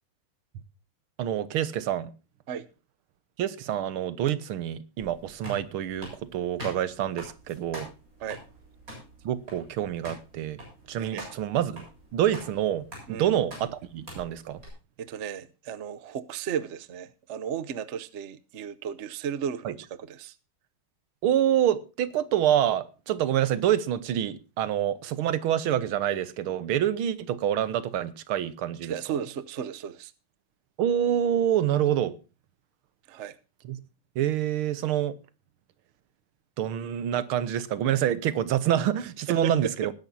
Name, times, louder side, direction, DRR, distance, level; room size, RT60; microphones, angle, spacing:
voice 1, 1.2-2.1 3.4-7.9 9.2-10.6 10.9-11.9 12.1-14.6 19.7-19.8 21.2-28.9 30.8-32.2 33.6-33.8 34.2-35.2 36.6-39.9, right 11 dB, 80° right, 1.8 m, -27 dB
sound 1, 5.0-14.7, right 1 dB, 40° right, 7.8 m, -44 dB
voice 2, 15.0-20.3 28.8-30.1 33.1-33.4 39.3-39.5, right 8 dB, 55° right, 0.7 m, -35 dB
20.0 x 10.5 x 2.7 m
omnidirectional pair, 2.4 m